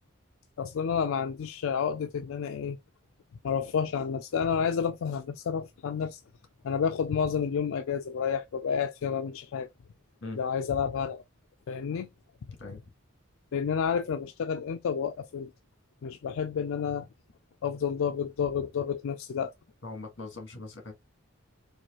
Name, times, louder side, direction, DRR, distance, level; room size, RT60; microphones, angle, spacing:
voice 1, 0.6-2.8 3.4-6.2 6.6-9.7 10.4-11.2 11.7-12.1 13.5-15.5 16.0-17.1 17.6-19.5, left 7 dB, 85° left, 0.4 m, -30 dB
voice 2, 12.5-12.8 19.8-20.9, left 3 dB, 60° left, 1.5 m, -41 dB
4.5 x 2.6 x 2.9 m
head